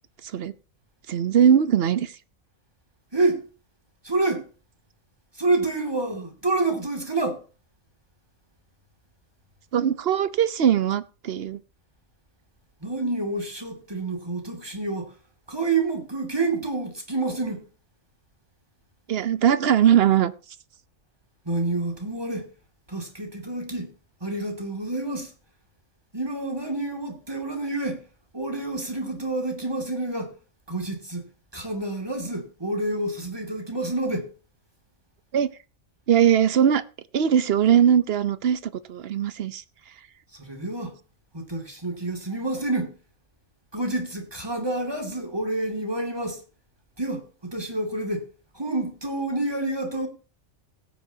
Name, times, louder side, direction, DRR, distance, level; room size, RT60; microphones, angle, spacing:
voice 1, 1.1-2.1 9.7-11.6 19.1-20.3 35.3-35.5 36.1-36.8 37.1-38.6 38.9-39.6, right 9 dB, 50° right, 0.9 m, -20 dB
voice 2, 3.1-3.5 4.0-4.4 5.4-7.4 12.8-15.1 15.5-17.7 21.5-22.5 22.9-23.9 24.2-25.3 26.1-28.0 28.3-30.4 30.7-34.3 40.3-41.0 41.3-43.0 43.7-46.4 47.0-48.3 48.5-50.1, right 2 dB, 15° right, 2.5 m, -28 dB
17.0 x 9.5 x 2.8 m
omnidirectional pair, 1.4 m